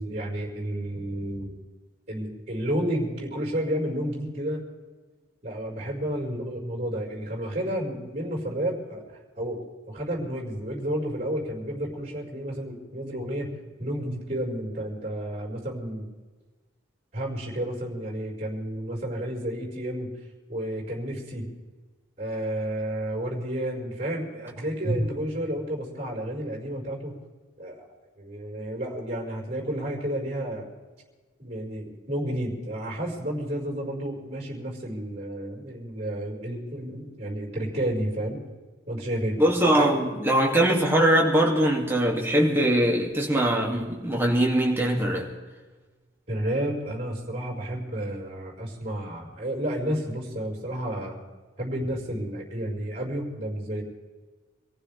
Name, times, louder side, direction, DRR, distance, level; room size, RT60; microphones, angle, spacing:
voice 1, 0.0-1.5 2.1-4.6 5.4-9.0 9.4-9.6 9.9-13.5 13.8-16.1 17.1-20.1 20.5-21.5 22.2-27.2 27.6-27.9 28.2-30.7 31.4-38.4 38.9-39.4 46.3-51.2 51.6-53.8, right 1 dB, 35° right, 5.2 m, -31 dB
voice 2, 39.4-45.3, right 1 dB, 10° right, 2.6 m, -22 dB
25.5 x 15.0 x 3.6 m
head